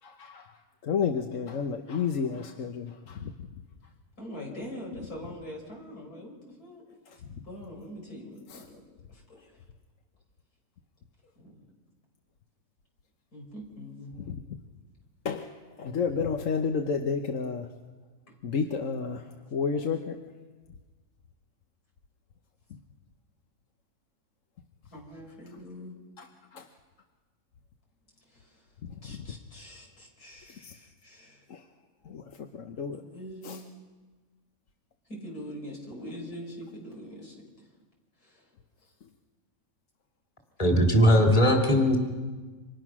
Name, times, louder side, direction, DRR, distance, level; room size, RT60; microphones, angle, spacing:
voice 1, 0.0-3.5 7.1-7.4 8.5-8.6 14.2-14.6 15.2-17.7 18.4-20.2 22.7-22.8 26.2-26.7 28.9-29.4 30.5-30.8 31.5-31.7 32.0-33.0 33.4-33.6 39.0-39.1, left 6 dB, 60° left, 5 dB, 1.3 m, -32 dB
voice 2, 4.2-6.8 7.1-9.6 11.4-11.6 13.3-14.2 18.3-18.4 24.9-25.9 28.3-28.7 29.0-31.4 33.0-33.6 35.1-37.5 38.2-38.5, equal, 75° left, 0 dB, 6.0 m, -43 dB
voice 3, 40.6-42.0, equal, 20° left, 2 dB, 2.8 m, -20 dB
29.5 x 26.0 x 6.1 m, 1.3 s
omnidirectional pair, 1.6 m